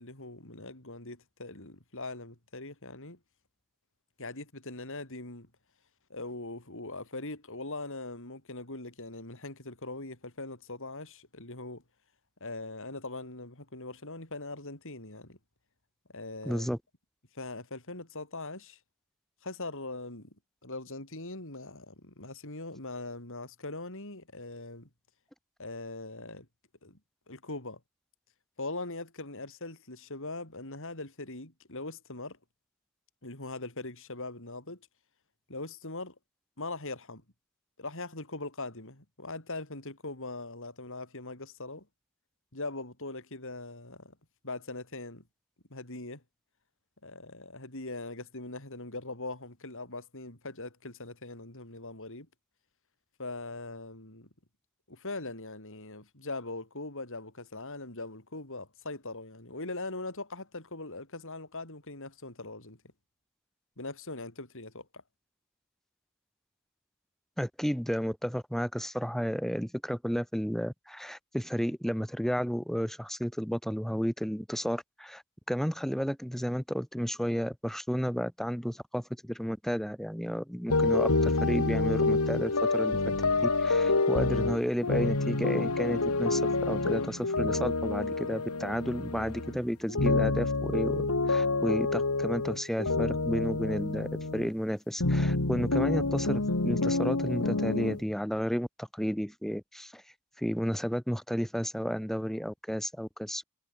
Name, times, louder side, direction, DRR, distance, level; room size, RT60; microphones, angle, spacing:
voice 1, 0.0-3.2 4.2-5.5 6.1-11.8 12.4-15.4 16.1-16.7 17.3-18.8 19.4-20.3 20.6-24.9 25.6-26.5 26.8-27.0 27.3-27.8 28.6-32.4 33.2-34.8 35.5-36.1 36.6-37.2 37.8-41.9 42.5-44.2 44.4-45.2 45.7-46.2 47.0-52.3 53.2-54.3 54.9-62.8 63.8-65.0, left 2 dB, 60° left, 6.0 m, -41 dB
voice 2, 16.4-16.8 67.4-75.2 75.5-83.0 83.6-100.0 100.4-103.4, equal, ahead, 3.2 m, -32 dB
sound 1, 80.7-89.6 89.9-94.5 95.0-98.0, left 3 dB, 80° left, 2.1 m, -28 dB
head